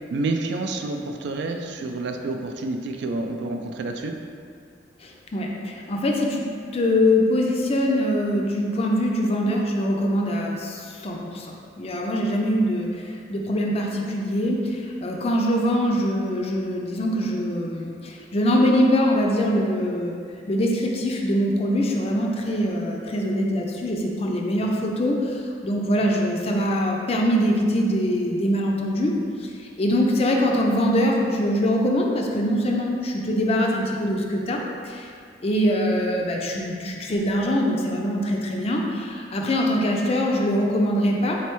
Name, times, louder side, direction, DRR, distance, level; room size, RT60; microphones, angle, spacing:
voice 1, 0.1-4.1, right 2 dB, 65° right, 4 dB, 0.3 m, -28 dB
voice 2, 5.0-6.4 6.7-20.1 20.5-29.1 29.4-29.5 29.8-35.1 35.4-41.4, equal, 35° left, 0 dB, 0.4 m, -23 dB
4.1 x 3.2 x 3.0 m, 2.3 s
head